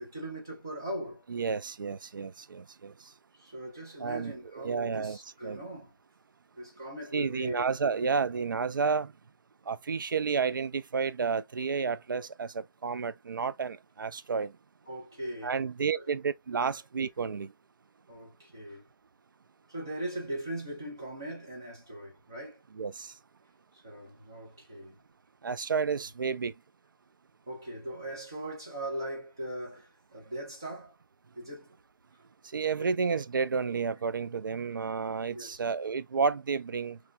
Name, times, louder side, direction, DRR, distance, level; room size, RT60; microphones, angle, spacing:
voice 1, 0.0-1.2 3.4-5.9 6.6-7.7 8.0-8.2 14.9-15.5 15.9-16.0 16.6-16.7 18.1-18.8 19.7-22.6 23.8-25.0 27.5-30.9 31.3-31.7 32.8-32.9 35.3-35.6, right 1 dB, 10° right, 0.5 m, -39 dB
voice 2, 1.3-2.9 4.0-5.2 5.4-5.6 7.1-9.1 9.7-14.5 15.4-17.5 22.7-23.1 25.4-26.5 32.5-37.0, right 5 dB, 75° right, 0.4 m, -31 dB
3.1 x 2.2 x 3.3 m
hypercardioid pair, 180°, 11 cm